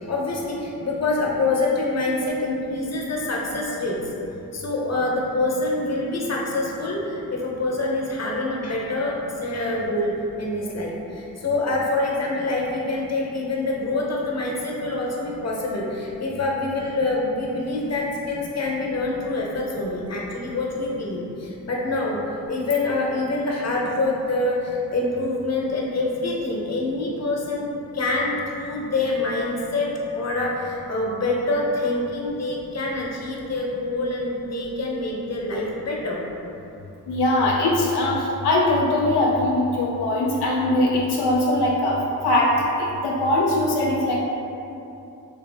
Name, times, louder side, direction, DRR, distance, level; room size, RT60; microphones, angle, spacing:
voice 1, 0.0-4.0 4.5-22.2 22.5-27.7 27.9-36.2, left 2 dB, 40° left, -2 dB, 0.8 m, -26 dB
voice 2, 37.1-42.0 42.2-42.5 42.8-44.2, left 1 dB, 85° left, -3 dB, 0.5 m, -21 dB
3.4 x 2.8 x 3.3 m, 2.8 s
cardioid pair, 65°, 38 cm